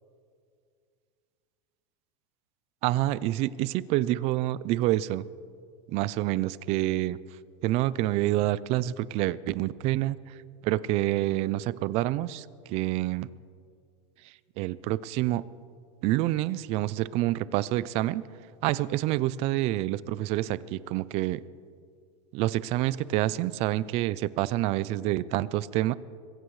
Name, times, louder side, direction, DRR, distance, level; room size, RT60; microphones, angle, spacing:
voice 1, 2.8-5.2 5.9-7.2 7.6-10.2 10.6-13.3 14.6-15.4 16.0-18.3 18.6-21.4 22.3-25.9, right 15 dB, 40° right, 18 dB, 0.4 m, -27 dB
23.0 x 15.0 x 3.2 m, 2.2 s
supercardioid pair, 150°, 16 cm